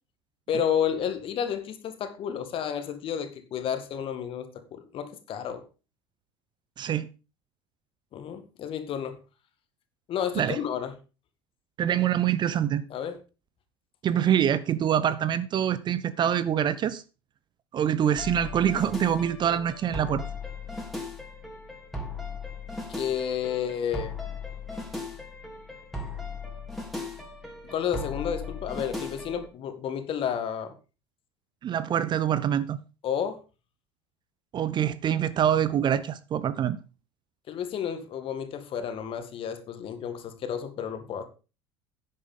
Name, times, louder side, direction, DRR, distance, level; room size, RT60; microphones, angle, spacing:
voice 1, 0.5-5.6 8.1-9.2 10.1-10.9 12.9-13.2 22.9-24.1 27.6-30.7 33.0-33.4 37.5-41.2, left 8 dB, 40° left, 2.0 m, -31 dB
voice 2, 6.8-7.1 10.4-10.6 11.8-12.8 14.0-17.0 17.7-20.2 31.6-32.8 34.5-36.8, right 9 dB, 35° right, 0.7 m, -25 dB
sound 1, 18.2-29.5, left 3 dB, ahead, 3.4 m, -37 dB
10.5 x 9.4 x 3.8 m
figure-of-eight pair, 70°, 14 cm